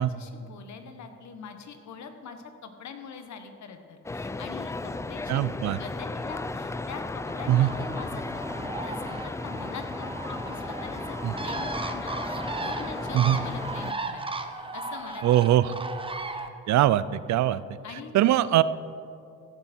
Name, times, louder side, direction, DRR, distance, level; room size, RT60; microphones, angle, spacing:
voice 1, 0.0-14.2 14.7-15.6 17.8-18.1, left 6 dB, 65° left, 7 dB, 1.4 m, -43 dB
sound 1, 4.0-13.9, left 2 dB, 10° left, 0.3 m, -35 dB
voice 2, 5.3-5.8 7.5-7.7 11.2-11.3 13.1-13.4 15.2-15.7 16.7-17.6 18.1-18.6, right 13 dB, 65° right, 17 dB, 0.5 m, -21 dB
Bird, 7.3-16.5, right 3 dB, 15° right, 0.8 m, -36 dB
15.5 x 10.5 x 4.5 m, 2.6 s
cardioid pair, 90°, 30 cm